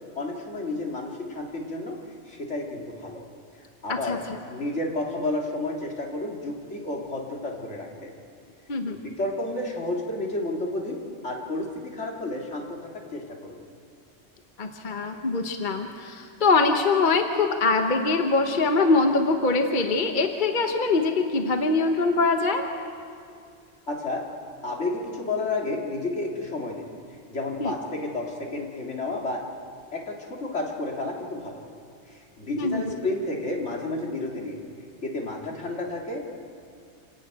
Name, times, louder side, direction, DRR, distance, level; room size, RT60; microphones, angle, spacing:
voice 1, 0.2-2.0 2.3-3.2 3.8-4.2 4.5-8.1 8.9-13.6 23.9-24.2 24.6-26.8 27.3-29.4 29.9-31.6 32.4-34.6 35.0-36.3, left 2 dB, 70° left, -1 dB, 2.8 m, -31 dB
voice 2, 14.6-22.6 27.6-27.7 32.6-33.0, left 3 dB, 45° left, 4 dB, 1.2 m, -23 dB
27.0 x 11.5 x 9.0 m, 2.3 s
omnidirectional pair, 1.2 m